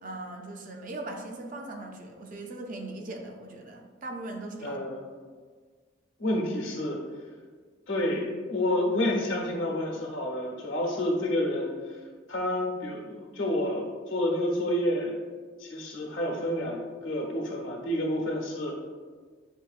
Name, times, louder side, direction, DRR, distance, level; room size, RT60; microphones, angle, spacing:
voice 1, 0.0-4.8, right 2 dB, 45° right, 2 dB, 0.5 m, -39 dB
voice 2, 4.6-5.0 6.2-7.0 7.9-11.9 12.3-15.2 15.6-18.8, left 1 dB, 85° left, -1 dB, 1.0 m, -29 dB
6.7 x 2.6 x 2.4 m, 1.5 s
head